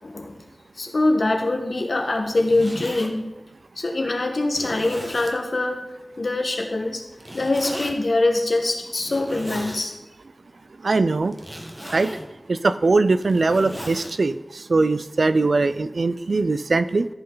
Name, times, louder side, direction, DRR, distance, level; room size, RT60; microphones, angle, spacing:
voice 1, 0.0-0.4 0.7-3.3 3.8-5.8 6.2-7.0 7.3-9.9, left 2 dB, 70° left, 3 dB, 1.3 m, -23 dB
Zipper (clothing), 2.2-3.1 3.8-3.9 4.5-5.4 7.2-7.9 9.0-9.9 11.3-12.3 13.0-14.1, equal, 15° right, 1.2 m, -35 dB
voice 2, 10.8-11.4 11.9-12.2 12.5-17.1, right 3 dB, 75° right, 13 dB, 0.4 m, -21 dB
14.0 x 5.5 x 3.9 m, 0.97 s
wide cardioid pair, 75°, 0 cm